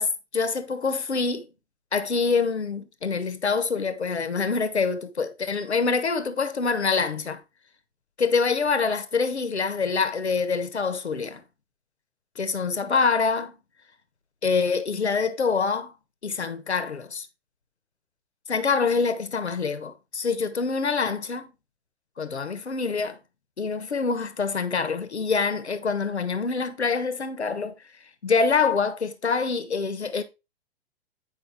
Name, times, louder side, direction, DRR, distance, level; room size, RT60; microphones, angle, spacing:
voice 1, 0.0-1.5 1.9-7.4 8.2-11.4 12.4-13.5 14.4-15.9 16.2-17.3 18.5-21.5 22.2-23.2 23.6-27.7 28.2-30.2, left 5 dB, 75° left, 1.2 m, -25 dB
9.2 x 5.4 x 3.6 m
figure-of-eight pair, 110°, 33 cm